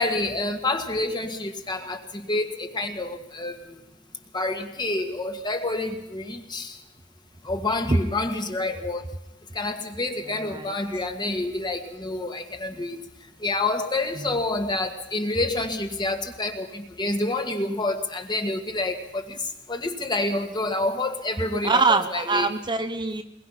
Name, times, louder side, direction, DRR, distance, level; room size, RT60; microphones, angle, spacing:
voice 1, 0.0-3.8 4.3-6.8 7.4-9.2 9.5-13.1 13.4-22.5, left 2 dB, 25° left, 1.8 m, -28 dB
voice 2, 10.4-10.7 21.6-23.2, right 3 dB, 25° right, 0.8 m, -23 dB
23.0 x 21.0 x 5.8 m
head